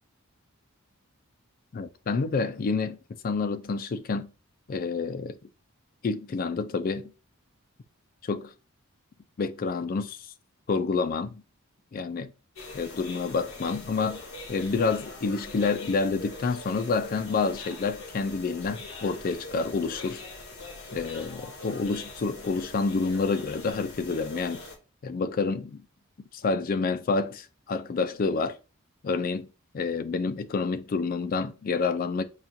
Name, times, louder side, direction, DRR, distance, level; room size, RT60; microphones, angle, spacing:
voice 1, 1.7-3.0 3.2-4.3 4.7-5.4 6.0-7.1 8.2-8.5 9.4-10.3 10.7-11.4 11.9-12.3 12.7-14.2 14.5-20.2 20.9-24.6 25.0-25.8 26.3-28.6 29.0-29.5 29.7-32.2, left 4 dB, 40° left, 0.3 m, -28 dB
sound 1, 12.6-24.8, left 3 dB, 75° left, 1.0 m, -42 dB
5.6 x 2.4 x 2.6 m
head